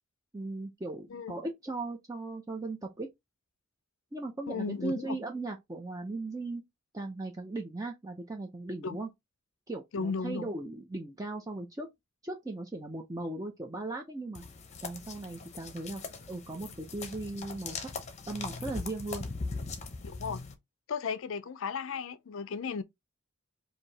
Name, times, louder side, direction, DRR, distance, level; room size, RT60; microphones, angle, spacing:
voice 1, 0.3-3.1 4.1-6.6 6.9-9.1 9.7-11.9 12.2-14.4 14.8-16.0 16.3-17.8 18.3-19.3, right 2 dB, 15° right, 0.6 m, -37 dB
voice 2, 4.5-5.2 8.8-9.0 9.9-10.5 20.0-20.4 20.9-22.8, left 5 dB, 65° left, 0.4 m, -35 dB
sound 1, 14.3-20.5, left 4 dB, 30° left, 0.7 m, -40 dB
4.8 x 2.7 x 2.7 m
head